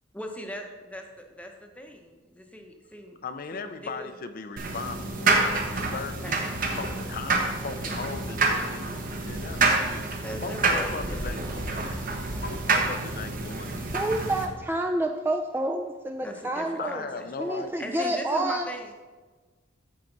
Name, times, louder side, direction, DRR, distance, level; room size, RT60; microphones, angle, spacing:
voice 1, 0.1-0.6 0.9-1.0 1.4-3.2 3.5-4.1 6.2-6.4 10.2-11.8 16.2-17.3 17.8-18.9, equal, 5° left, 3 dB, 0.8 m, -40 dB
voice 2, 3.2-6.4 6.7-10.1 10.4-12.0 12.4-13.8 16.8-17.9, left 4 dB, 45° left, 8 dB, 0.5 m, -38 dB
sound 1, 4.6-14.5, right 3 dB, 45° right, 1.0 m, -28 dB
voice 3, 13.9-17.0 17.4-18.7, right 1 dB, 10° right, 4 dB, 0.4 m, -28 dB
13.5 x 4.7 x 4.0 m, 1.3 s
head